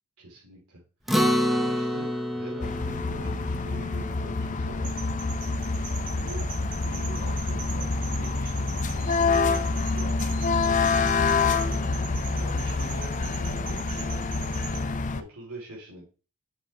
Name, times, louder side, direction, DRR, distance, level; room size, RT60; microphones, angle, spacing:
voice 1, 0.2-1.2 1.5-5.0 6.1-6.4 6.8-10.4 11.2-14.1 14.5-14.6 15.1-16.1, right 1 dB, 85° right, -3 dB, 3.7 m, -44 dB
Acoustic guitar, 1.1-5.8, equal, ahead, 0.8 m, -29 dB
sound 1, 2.6-15.2, left 4 dB, 35° left, 0.5 m, -27 dB
sound 2, 4.8-14.8, right 3 dB, 60° right, 3.6 m, -41 dB
8.1 x 6.5 x 3.4 m, 0.35 s
head